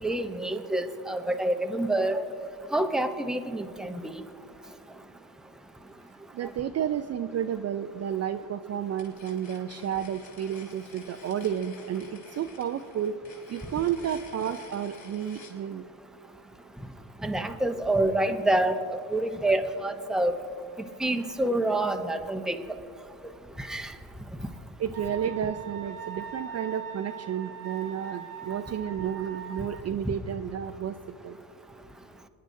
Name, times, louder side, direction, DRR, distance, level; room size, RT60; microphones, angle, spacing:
voice 1, 0.0-2.2 2.7-4.2 17.2-18.8 19.1-20.4 20.8-22.6 23.6-23.9 30.0-30.1, right 1 dB, ahead, 6 dB, 0.7 m, -27 dB
voice 2, 6.3-13.1 13.5-15.8 24.8-31.0 31.2-31.4, right 9 dB, 35° right, 7 dB, 0.5 m, -31 dB
sound 1, 8.9-15.6, left 4 dB, 50° left, 3.5 m, -51 dB
Wind instrument woodwind instrument, 24.9-29.8, right 8 dB, 50° right, 0.9 m, -41 dB
28.0 x 10.0 x 2.7 m, 2.5 s
supercardioid pair, 85°, 46 cm